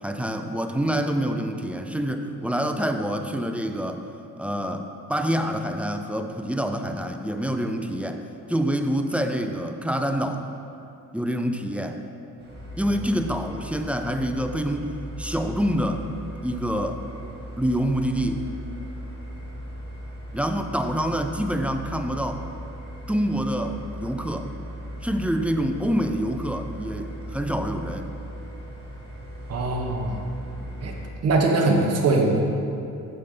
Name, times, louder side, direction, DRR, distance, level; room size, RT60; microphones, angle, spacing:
voice 1, 0.0-4.0 4.4-8.2 8.5-10.4 11.1-12.0 12.8-14.9 15.2-16.0 16.4-17.0 17.6-18.4 20.3-22.4 23.1-24.5 25.0-28.1, equal, 5° right, 5 dB, 0.4 m, -26 dB
sound 1, 12.4-31.1, equal, 30° right, 2.0 m, -38 dB
voice 2, 29.5-30.2 30.8-30.9 31.2-32.4, right 3 dB, 45° right, 1 dB, 1.1 m, -21 dB
9.2 x 6.6 x 3.8 m, 2.7 s
cardioid pair, 115°, 33 cm